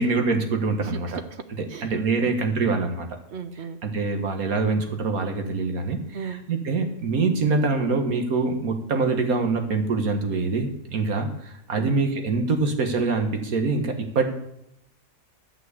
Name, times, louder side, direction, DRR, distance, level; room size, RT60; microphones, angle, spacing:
voice 1, 0.0-1.1 1.8-3.1 3.8-14.3, right 3 dB, 85° right, 5 dB, 1.9 m, -24 dB
voice 2, 0.8-1.4 1.7-1.9 2.2-2.4 3.3-3.8 6.1-6.4 11.7-11.9, right 6 dB, 55° right, 10 dB, 1.0 m, -36 dB
12.0 x 6.1 x 8.2 m, 0.80 s
omnidirectional pair, 1.5 m